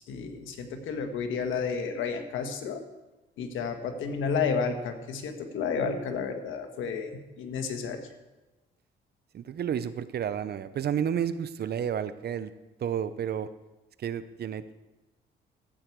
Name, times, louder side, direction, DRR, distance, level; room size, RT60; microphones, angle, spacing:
voice 1, 0.1-2.8 3.4-8.1, left 5 dB, 85° left, 6 dB, 1.4 m, -31 dB
voice 2, 9.3-12.5 12.8-13.5 14.0-14.7, right 8 dB, 55° right, 14 dB, 0.7 m, -31 dB
14.0 x 8.5 x 4.6 m, 1.1 s
cardioid pair, 90°, 20 cm